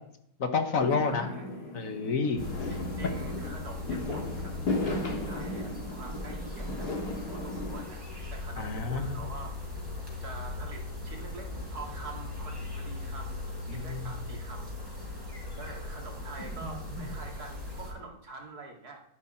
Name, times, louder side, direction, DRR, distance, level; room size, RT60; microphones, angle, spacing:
voice 1, 0.4-1.3 1.7-2.4 3.0-3.1 8.6-9.2 13.7-14.0, left 4 dB, 60° left, 7 dB, 1.6 m, -29 dB
Fireworks, 0.7-7.8, left 2 dB, 80° left, 2.5 m, -35 dB
voice 2, 1.0-1.6 2.3-2.4 2.7-7.0 7.3-8.0 8.3-9.6 10.2-15.1 15.6-19.0, right 3 dB, 75° right, 1 dB, 2.8 m, -46 dB
sound 1, 2.4-17.9, left 2 dB, 15° right, 4.8 m, -39 dB
12.5 x 11.0 x 4.4 m, 0.71 s
omnidirectional pair, 1.7 m